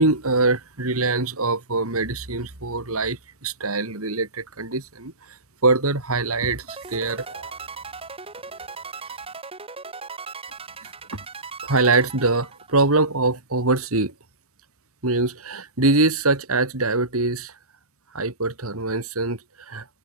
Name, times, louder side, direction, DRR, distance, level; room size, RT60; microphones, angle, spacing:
voice 1, 0.0-7.6 9.1-9.2 10.8-11.2 11.6-14.1 15.0-17.6 18.1-19.9, right 3 dB, 80° right, 3.0 m, -23 dB
sound 1, 6.7-13.0, right 4 dB, 25° right, 7.2 m, -38 dB
head